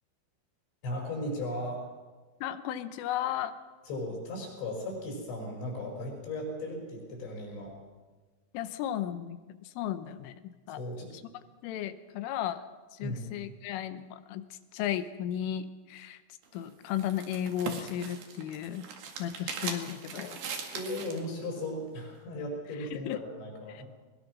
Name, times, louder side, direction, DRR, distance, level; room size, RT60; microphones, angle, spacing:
voice 1, 0.8-1.8 3.8-7.8 10.7-11.1 13.0-13.2 20.7-23.8, left 1 dB, 65° left, 0 dB, 8.0 m, -36 dB
voice 2, 2.4-3.5 8.5-10.4 10.7-10.8 11.6-12.7 12.9-14.4 14.7-16.2 16.5-18.9 19.2-20.4 22.9-23.2 23.7-23.8, left 11 dB, 85° left, 11 dB, 3.5 m, -34 dB
sound 1, 16.4-21.3, right 6 dB, 55° right, 3.3 m, -40 dB
21.5 x 21.0 x 6.2 m, 1.3 s
omnidirectional pair, 5.6 m